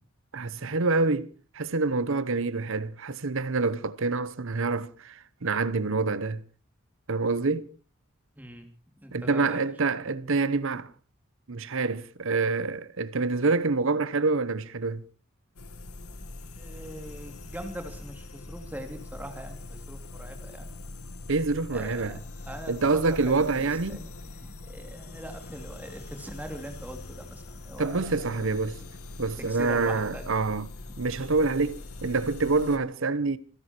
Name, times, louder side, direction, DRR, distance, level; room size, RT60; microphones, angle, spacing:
voice 1, 0.3-1.3 1.5-6.4 7.1-7.7 9.1-10.9 11.5-15.0 21.3-22.2 22.7-24.0 27.8-28.8 29.2-30.7 31.0-33.4, right 3 dB, 60° right, 0.9 m, -26 dB
voice 2, 8.3-8.7 9.0-9.6 16.5-20.7 21.7-28.5 29.4-30.2, right 1 dB, 10° right, 2.8 m, -42 dB
sound 1, 15.6-32.8, left 2 dB, 85° left, 2.1 m, -42 dB
27.5 x 11.0 x 4.5 m
head